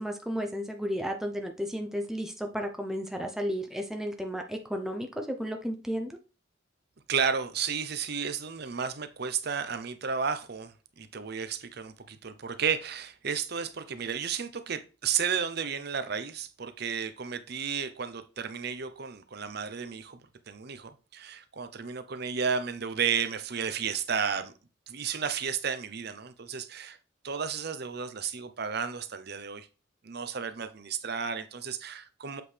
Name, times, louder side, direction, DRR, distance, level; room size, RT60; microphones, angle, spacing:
voice 1, 0.0-6.2, equal, ahead, 0.7 m, -33 dB
voice 2, 7.1-20.2 20.5-24.5 24.9-27.0 27.2-29.7 30.0-32.4, right 6 dB, 55° right, 0.7 m, -33 dB
7.7 x 4.9 x 3.4 m
head